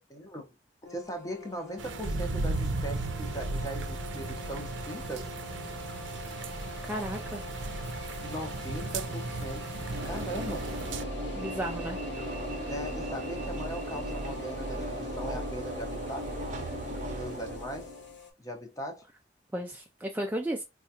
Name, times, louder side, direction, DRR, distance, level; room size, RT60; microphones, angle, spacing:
voice 1, 0.1-0.5 0.9-5.3 8.2-9.7 10.0-10.6 12.7-16.3 17.1-17.9 18.4-19.0, right 1 dB, 20° left, 0.7 m, -39 dB
sound 1, 0.8-18.3, left 3 dB, 65° left, 1.1 m, -44 dB
sound 2, 1.8-11.0, right 3 dB, 80° right, 0.5 m, -35 dB
voice 2, 6.8-7.4 11.4-12.0 19.5-20.6, right 1 dB, 10° right, 0.3 m, -34 dB
Train / Engine / Alarm, 9.9-18.1, right 1 dB, 40° right, 0.7 m, -36 dB
4.4 x 2.4 x 2.7 m
head